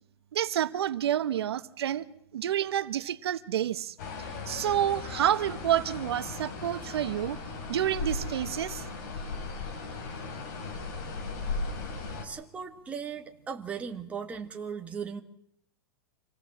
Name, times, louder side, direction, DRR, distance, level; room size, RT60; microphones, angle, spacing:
voice 1, 0.3-2.0 2.3-3.9 4.5-7.4 7.7-8.8, right 11 dB, 90° right, 1.3 m, -29 dB
sound 1, 4.0-12.3, left 3 dB, 45° left, 4.8 m, -37 dB
voice 2, 12.2-15.2, right 6 dB, 10° right, 1.6 m, -37 dB
26.5 x 17.5 x 7.4 m
supercardioid pair, 165°, 13 cm